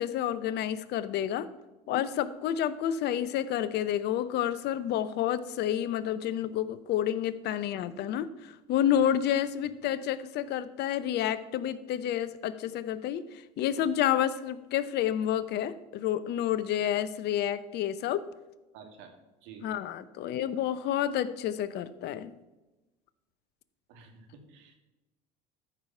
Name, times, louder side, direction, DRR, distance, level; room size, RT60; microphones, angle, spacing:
voice 1, 0.0-1.5 1.9-13.2 13.6-18.2 19.6-22.3, left 10 dB, 55° left, 15 dB, 0.7 m, -29 dB
voice 2, 18.7-19.1 19.4-19.7 23.9-24.8, right 6 dB, 65° right, 4 dB, 2.0 m, -50 dB
13.5 x 4.8 x 5.6 m, 1.1 s
hypercardioid pair, 80°, 21 cm